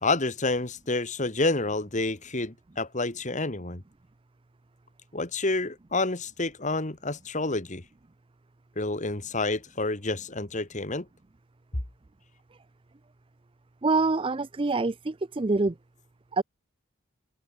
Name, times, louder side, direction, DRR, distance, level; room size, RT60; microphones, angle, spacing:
voice 1, 0.0-3.8 5.1-7.8 8.8-11.1, left 2 dB, 35° left, 1.9 m, -29 dB
voice 2, 13.8-15.7 16.3-16.4, right 3 dB, 25° right, 0.5 m, -25 dB
open air
head